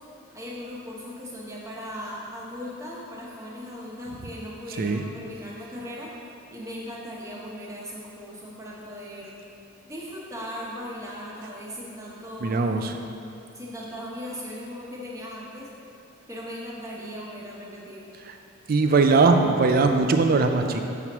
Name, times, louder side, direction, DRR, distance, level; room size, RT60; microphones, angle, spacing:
voice 1, 0.3-6.1 6.5-9.3 9.9-12.7 13.5-15.7 16.3-18.1, equal, 15° right, -5 dB, 0.9 m, -38 dB
voice 2, 12.4-13.0 18.7-20.8, right 3 dB, 45° right, 5 dB, 0.3 m, -20 dB
6.9 x 6.0 x 3.0 m, 2.7 s
head